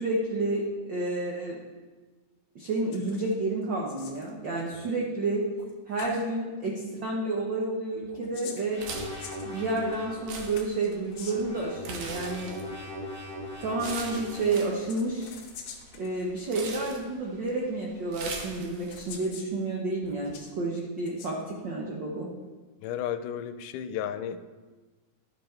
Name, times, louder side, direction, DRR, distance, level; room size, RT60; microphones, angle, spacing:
voice 1, 0.0-1.6 2.5-5.4 5.9-8.8 9.4-12.5 13.6-15.3 15.9-22.3, right 2 dB, 85° right, -2 dB, 1.0 m, -30 dB
sound 1, 2.9-3.3 3.6-4.3 5.6-5.7 6.0-6.3 8.0-10.0 10.6-11.6 13.5-14.2 14.9-16.1 17.0-17.1 18.2-18.3 18.9-19.5 20.0-20.5 21.0-21.3, left 6 dB, 70° left, 1.6 m, -46 dB
sound 2, 8.7-10.3 11.1-14.7, left 1 dB, 30° left, 2.5 m, -40 dB
sound 3, 8.7-19.1, right 4 dB, 65° right, 2.1 m, -43 dB
voice 2, 22.8-24.5, left 9 dB, 85° left, 11 dB, 2.1 m, -33 dB
12.0 x 5.4 x 4.4 m, 1.3 s
omnidirectional pair, 3.6 m